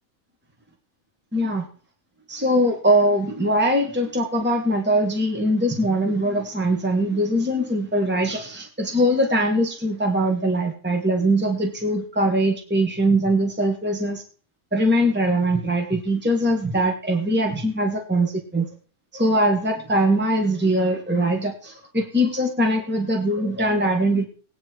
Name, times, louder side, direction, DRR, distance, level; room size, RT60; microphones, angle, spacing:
voice 1, 1.3-1.7 2.3-14.2 14.7-18.7 19.1-24.3, right 1 dB, 10° right, 2 dB, 2.0 m, -22 dB
18.5 x 9.6 x 4.7 m, 0.42 s
omnidirectional pair, 1.4 m